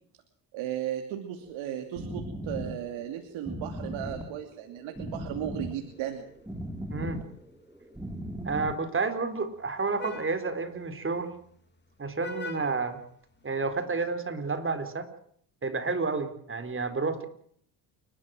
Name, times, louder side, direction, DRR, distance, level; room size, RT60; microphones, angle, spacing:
voice 1, 0.5-6.3, right 11 dB, 80° right, 5 dB, 2.8 m, -35 dB
sound 1, 1.4-8.8, equal, 5° right, 3.2 m, -38 dB
Vehicle horn car horn honking, 5.7-13.8, left 3 dB, 25° left, 3.6 m, -48 dB
voice 2, 6.9-7.2 8.4-11.3 12.0-13.0 13.4-15.1 15.6-17.3, right 4 dB, 25° right, 9 dB, 4.0 m, -30 dB
29.0 x 13.0 x 7.8 m, 0.64 s
cardioid pair, 95°, 46 cm